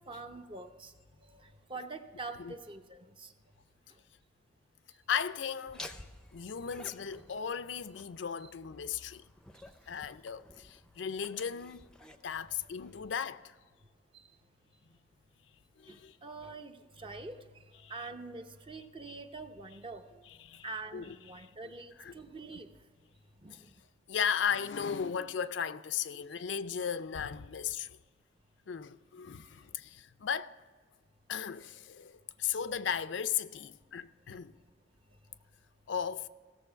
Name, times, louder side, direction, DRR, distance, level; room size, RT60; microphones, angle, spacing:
voice 1, 0.1-0.9 1.2-3.3 3.9-4.0 9.5-9.7 12.2-12.7 12.9-13.0 14.1-14.3 15.9-20.2 20.6-22.7 23.4-23.7 26.1-26.3, right 3 dB, 30° right, 0.7 m, -46 dB
voice 2, 5.1-6.0 6.3-9.3 9.9-11.9 12.2-13.5 15.8-16.1 17.8-17.9 20.4-20.6 20.9-21.2 22.0-22.1 23.5-23.6 24.1-28.0 28.7-30.6 31.3-34.6 35.9-36.3, left 7 dB, 80° left, 0.5 m, -36 dB
Laughter, 5.7-13.3, left 1 dB, 5° left, 0.6 m, -53 dB
16.0 x 7.1 x 5.7 m
head